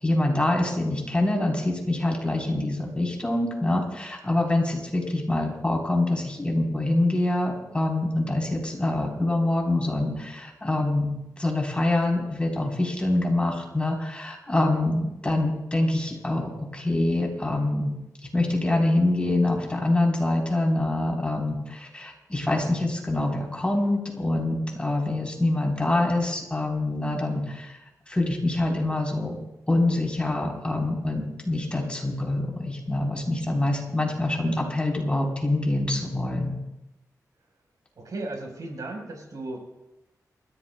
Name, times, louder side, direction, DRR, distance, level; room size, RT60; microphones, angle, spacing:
voice 1, 0.0-17.9 18.3-27.8 28.1-29.4 29.7-36.6, left 2 dB, 15° left, -1 dB, 3.7 m, -25 dB
voice 2, 38.0-39.7, right 2 dB, 75° right, 1 dB, 4.1 m, -35 dB
28.0 x 15.0 x 2.2 m, 0.94 s
wide cardioid pair, 100°, 6 cm